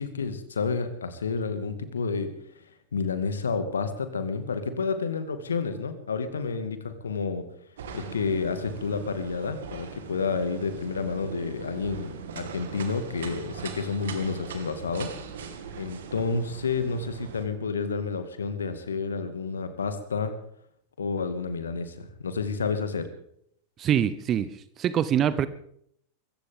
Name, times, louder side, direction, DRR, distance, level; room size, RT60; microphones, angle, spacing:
voice 1, 0.0-2.3 2.6-2.7 2.9-7.5 7.9-15.1 15.8-20.3 21.0-23.1, left 4 dB, 70° left, 9 dB, 2.0 m, -30 dB
sound 1, 7.8-17.4, right 6 dB, 60° right, 2.1 m, -40 dB
voice 2, 23.8-25.5, right 9 dB, 30° right, 15 dB, 0.8 m, -24 dB
24.0 x 15.0 x 3.7 m, 0.68 s
figure-of-eight pair, 90°, 0 cm